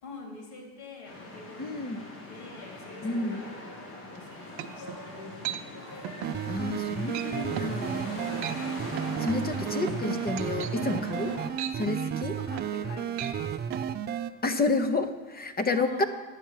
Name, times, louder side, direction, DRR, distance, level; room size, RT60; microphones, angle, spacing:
voice 1, 0.0-5.8 9.3-10.4 11.1-11.6 12.0-13.6 15.6-16.1, left 3 dB, 55° left, 0 dB, 3.4 m, -45 dB
sound 1, 1.0-11.5, left 2 dB, 85° left, 4.3 m, -41 dB
voice 2, 1.6-2.0 3.0-3.4 6.5-8.4 9.2-11.3 11.8-12.3 14.4-16.0, left 3 dB, 20° left, 10 dB, 0.9 m, -30 dB
sound 2, 4.1-4.2 4.6-5.0 5.4-5.6 6.0-6.4 6.7-6.9 7.1-7.3 7.6-7.8 8.2-8.6 9.0-12.9 13.1-13.4 13.7-13.9, right 11 dB, 55° right, 0.8 m, -37 dB
sound 3, 6.2-14.3, right 8 dB, 25° right, 0.4 m, -33 dB
10.0 x 7.2 x 7.4 m, 1.3 s
supercardioid pair, 90°, 47 cm